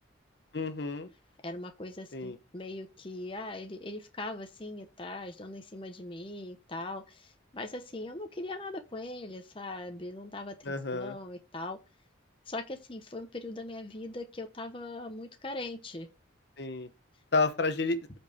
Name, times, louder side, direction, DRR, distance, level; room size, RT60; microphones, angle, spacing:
voice 1, 0.5-1.1 2.1-2.4 10.7-11.2 16.6-16.9 17.3-18.0, left 3 dB, 55° left, 0.9 m, -30 dB
voice 2, 1.4-11.8 12.5-16.1, left 2 dB, 25° left, 0.9 m, -40 dB
8.0 x 4.6 x 4.9 m
head